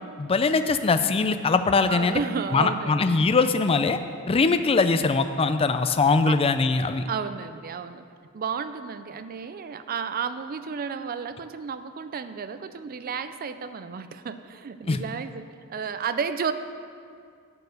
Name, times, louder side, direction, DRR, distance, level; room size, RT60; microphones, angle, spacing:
voice 1, 0.2-2.2 2.5-4.0 4.3-7.0 14.9-15.0, left 4 dB, 25° left, 9 dB, 0.4 m, -22 dB
voice 2, 1.9-3.0 6.2-6.4 7.1-8.0 8.3-16.5, right 6 dB, 40° right, 11 dB, 0.4 m, -32 dB
12.0 x 4.6 x 6.5 m, 2.3 s
head